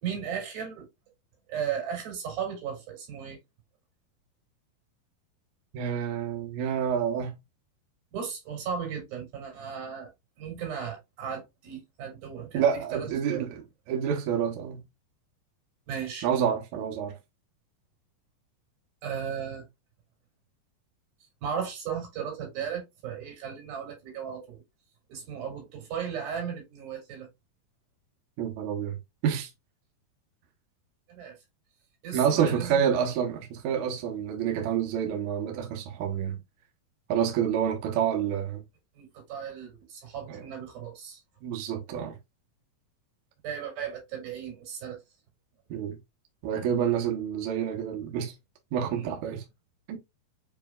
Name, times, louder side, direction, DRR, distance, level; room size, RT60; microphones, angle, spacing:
voice 1, 0.0-0.9 1.5-3.4 8.1-10.1 10.4-13.5 15.9-16.3 19.0-19.7 21.4-24.6 25.1-27.3 31.1-31.4 32.0-32.8 39.0-41.2 43.4-45.0 48.9-49.2, right 7 dB, 85° right, 4.1 m, -36 dB
voice 2, 5.7-7.4 12.5-13.6 13.9-14.8 16.2-17.2 28.4-29.5 32.1-36.4 37.1-38.6 40.3-40.5 41.4-42.2 45.7-46.0 46.4-48.3 48.7-49.4 49.9-50.0, right 8 dB, 70° right, 2.2 m, -28 dB
6.9 x 3.3 x 2.2 m
omnidirectional pair, 4.1 m